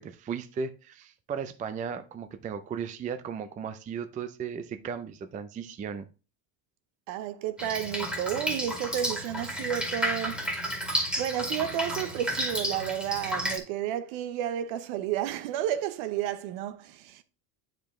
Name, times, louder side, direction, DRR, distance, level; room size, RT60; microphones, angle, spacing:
voice 1, 0.0-6.1, right 6 dB, 20° right, 0.4 m, -36 dB
voice 2, 7.1-10.8 11.2-17.2, right 11 dB, 70° right, 1.0 m, -32 dB
Drip, 7.6-13.6, equal, ahead, 1.9 m, -32 dB
8.9 x 5.2 x 3.6 m
cardioid pair, 140°, 49 cm